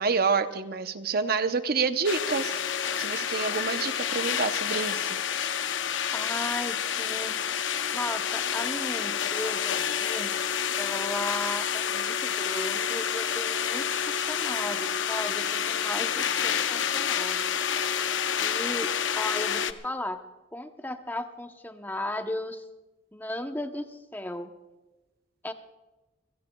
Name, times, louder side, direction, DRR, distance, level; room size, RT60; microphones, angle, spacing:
voice 1, 0.0-2.6 3.0-5.2, right 5 dB, 50° right, 10 dB, 0.7 m, -28 dB
sound 1, 2.0-19.7, left 8 dB, 65° left, 0.7 m, -29 dB
voice 2, 6.1-7.4 7.9-10.4 10.8-17.5 18.4-20.2 20.5-22.7 23.1-24.5 25.4-25.5, left 1 dB, 10° left, 7 dB, 0.8 m, -36 dB
27.5 x 17.0 x 2.3 m, 1.1 s
head